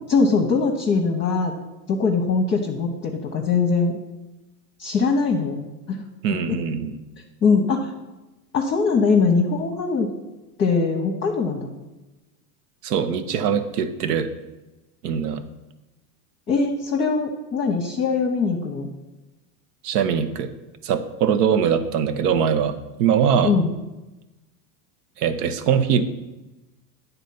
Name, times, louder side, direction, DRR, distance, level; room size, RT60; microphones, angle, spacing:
voice 1, 0.1-1.5 1.9-4.0 4.8-6.0 6.5-6.6 7.4-7.9 8.5-10.1 10.6-11.7 16.5-18.9 23.4-23.7, left 4 dB, 25° left, 1 dB, 0.8 m, -21 dB
voice 2, 6.2-6.9 12.8-14.3 15.0-15.4 19.8-20.5 20.8-23.5 25.2-26.0, right 7 dB, 75° right, 10 dB, 0.9 m, -22 dB
9.2 x 4.1 x 5.7 m, 1.1 s
supercardioid pair, 120°, 47 cm